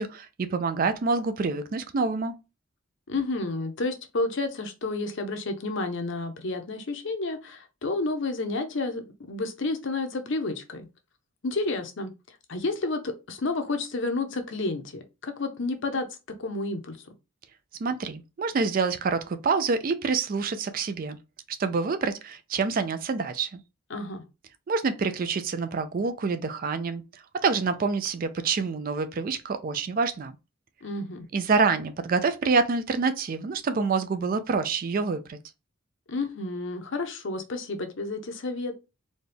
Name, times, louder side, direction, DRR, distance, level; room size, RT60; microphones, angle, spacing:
voice 1, 0.0-2.3 17.8-21.2 21.6-23.6 24.7-27.0 27.4-30.3 31.3-35.4, right 4 dB, 40° right, 0.4 m, -27 dB
voice 2, 3.1-10.9 11.4-12.1 12.5-16.1 16.4-17.0 23.9-24.2 30.8-31.3 36.1-38.7, left 2 dB, 60° left, 0.7 m, -30 dB
4.2 x 2.3 x 3.3 m
head